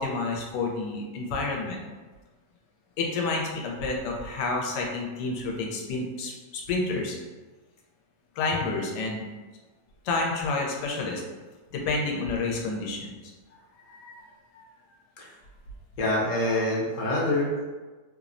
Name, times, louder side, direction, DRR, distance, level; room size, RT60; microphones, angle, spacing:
voice 1, 0.0-1.8 3.0-7.2 8.4-9.2 10.0-11.2 11.7-13.2 13.9-14.2 14.5-14.6, left 3 dB, 90° left, 0 dB, 1.2 m, -29 dB
voice 2, 16.0-17.6, left 1 dB, 70° left, -4 dB, 1.0 m, -26 dB
3.0 x 2.0 x 2.4 m, 1.3 s
omnidirectional pair, 1.8 m